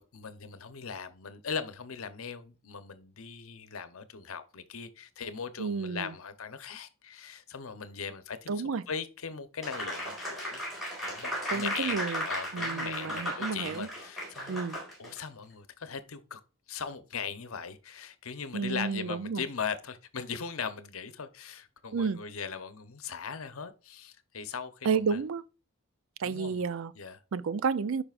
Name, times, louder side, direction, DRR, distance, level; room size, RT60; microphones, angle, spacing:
voice 1, 0.0-8.5 8.9-10.6 11.0-12.0 12.2-16.4 16.7-25.2 26.2-26.6 26.9-27.2, left 6 dB, 75° left, 0.8 m, -39 dB
voice 2, 5.6-6.1 8.5-8.8 11.5-12.2 12.5-13.9 14.5-14.8 18.5-19.4 21.9-22.2 24.8-25.4 26.2-26.9 27.3-28.0, right 5 dB, 70° right, 0.4 m, -31 dB
Applause, 9.6-15.2, equal, ahead, 4.4 m, -35 dB
10.5 x 5.0 x 2.5 m
head